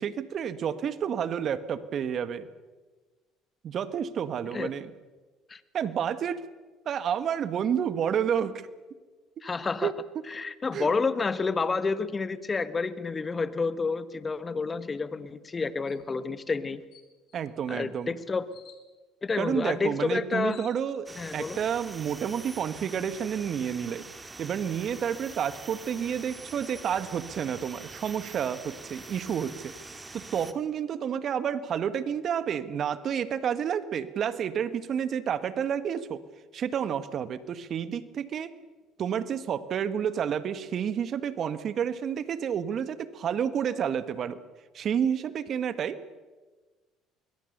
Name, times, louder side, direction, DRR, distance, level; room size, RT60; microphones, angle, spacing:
voice 1, 0.0-2.5 3.6-4.9 5.7-6.4 6.8-8.7 9.8-9.9 10.7-10.9 17.3-18.1 19.4-21.1 21.3-24.0 24.4-29.7 30.1-36.2 36.5-38.6 39.0-44.4 44.7-46.0, right 8 dB, 50° right, 13 dB, 1.6 m, -30 dB
voice 2, 9.4-9.9 10.3-16.8 17.7-18.5 19.2-20.6 21.2-21.6, left 4 dB, 30° left, 14 dB, 1.5 m, -29 dB
sound 1, 15.9-16.1 16.5-16.6 16.9-17.4 18.5-18.8 20.0-20.1 20.3-21.2, left 9 dB, 60° left, 3.6 m, -54 dB
sound 2, 21.1-30.5, right 3 dB, 20° right, 2.2 m, -45 dB
26.0 x 21.0 x 6.8 m, 1.3 s
hypercardioid pair, 65°, 0 cm